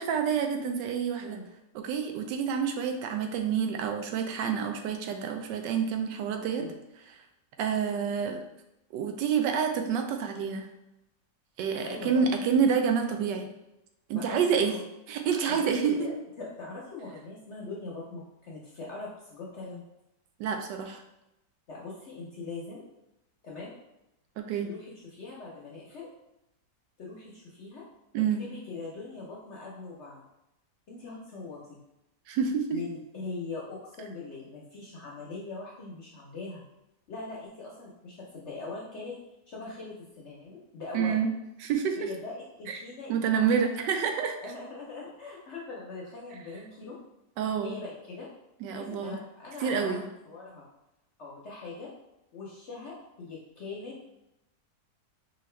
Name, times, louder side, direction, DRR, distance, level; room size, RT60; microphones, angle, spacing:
voice 1, 0.0-1.4 1.8-6.7 7.1-7.2 7.6-8.4 8.9-10.7 11.6-13.5 14.1-14.7 15.1-16.1 20.4-21.0 24.4-24.7 28.1-28.4 32.3-32.8 40.9-41.3 41.6-42.1 42.7-42.8 43.1-44.4 47.4-47.7 48.6-49.2 49.6-50.1, right 7 dB, 85° right, 5 dB, 1.2 m, -28 dB
voice 2, 11.8-12.2 14.1-14.8 15.5-19.8 21.7-22.8 23.4-23.7 24.6-26.1 27.0-27.8 28.4-30.2 30.9-31.8 32.7-36.6 37.1-39.2 39.5-41.2 42.0-43.6 44.4-47.0 47.6-48.3 48.7-50.0 50.3-50.6 51.2-51.9 52.3-53.9, left 3 dB, 60° left, -4 dB, 0.7 m, -41 dB
5.1 x 2.4 x 3.2 m, 0.89 s
omnidirectional pair, 1.9 m